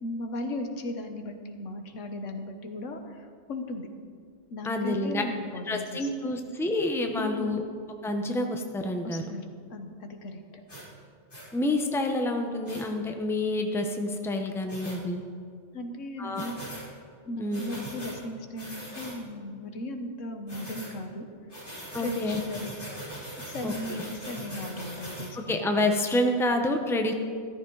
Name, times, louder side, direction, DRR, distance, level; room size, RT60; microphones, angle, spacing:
voice 1, 0.0-3.9 4.5-6.3 7.2-7.6 9.0-10.4 15.7-16.6 17.2-21.3 22.0-22.7 23.4-25.6, left 1 dB, 85° left, 6 dB, 1.5 m, -37 dB
voice 2, 4.6-5.2 5.7-7.6 8.0-9.2 11.5-15.2 16.2-16.5 17.4-17.7 21.9-22.4 23.6-23.7 25.5-27.1, left 1 dB, ahead, 4 dB, 0.8 m, -28 dB
sound 1, 10.7-10.8 11.3-11.5 12.6-12.8 14.7-15.0 16.3-16.8 17.5-18.2 18.6-19.2 20.5-20.9 21.5-25.3, right 1 dB, 45° left, 4.5 m, -40 dB
14.0 x 13.5 x 3.9 m, 2.1 s
omnidirectional pair, 1.2 m